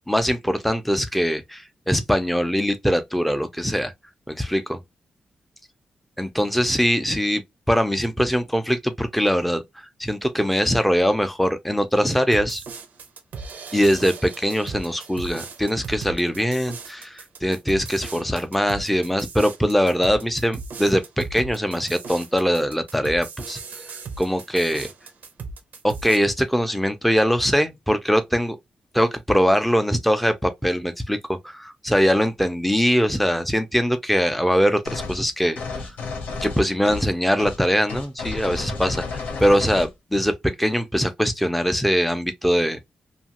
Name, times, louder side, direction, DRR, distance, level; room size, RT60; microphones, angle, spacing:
voice 1, 0.1-3.9 4.3-4.8 6.2-7.4 7.7-12.6 13.7-23.6 24.2-24.9 25.8-28.6 28.9-35.8 36.4-40.3 40.6-42.9, equal, 5° left, 0.4 m, -22 dB
sound 1, 12.3-26.2, right 4 dB, 80° right, 0.6 m, -37 dB
sound 2, 34.8-35.2 35.5-37.1 37.4-37.6 37.9-39.9, left 4 dB, 85° left, 0.8 m, -32 dB
2.7 x 2.3 x 2.8 m
wide cardioid pair, 135°, 3 cm